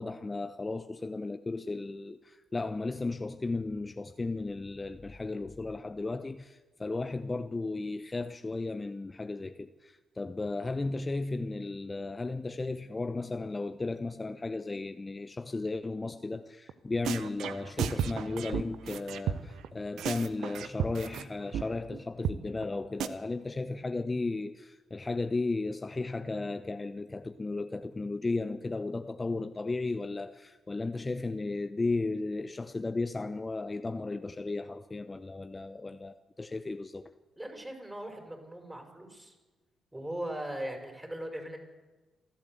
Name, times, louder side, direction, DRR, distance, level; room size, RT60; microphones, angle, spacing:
voice 1, 0.0-37.1, left 3 dB, 30° left, 1.0 m, -35 dB
sound 1, 16.7-16.8 17.0-19.7 20.0-21.2 21.5-21.6 21.9-22.0 22.2-22.4 22.6-22.7 23.0-23.1, right 9 dB, 70° right, 1.0 m, -33 dB
voice 2, 37.4-39.3 39.9-41.6, right 1 dB, 15° right, 6.4 m, -39 dB
27.5 x 12.0 x 8.1 m
hypercardioid pair, 40°, 0 cm